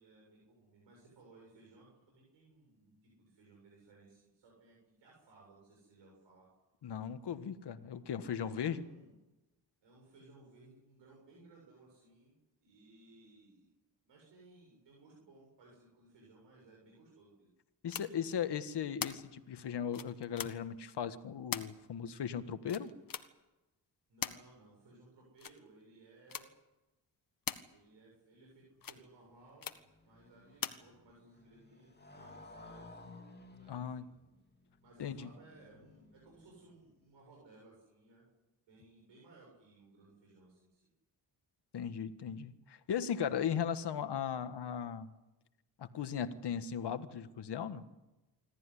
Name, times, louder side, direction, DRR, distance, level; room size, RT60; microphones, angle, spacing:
voice 1, 0.0-6.5 8.4-9.2 9.8-12.3 12.6-13.7 14.1-17.5 24.1-26.5 27.7-29.7 30.0-33.1 33.5-33.8 34.8-38.2 38.7-40.9, right 2 dB, 90° right, -2 dB, 7.4 m, -61 dB
voice 2, 6.8-8.8 17.8-22.9 33.7-34.1 35.0-35.3 41.7-45.1 45.8-47.8, left 8 dB, 65° left, 11 dB, 1.6 m, -37 dB
sound 1, 17.9-18.1 19.0-19.1 19.9-20.5 21.5-21.7 22.7-23.2 24.2-24.4 25.4-25.6 26.3-26.4 27.5-27.6 28.8-29.0 29.6-29.8 30.6-30.8, left 7 dB, 50° left, 1.6 m, -39 dB
Motorcycle, 28.8-36.9, left 3 dB, 25° left, 2.9 m, -57 dB
26.0 x 14.0 x 10.0 m, 1.0 s
cardioid pair, 65°, 43 cm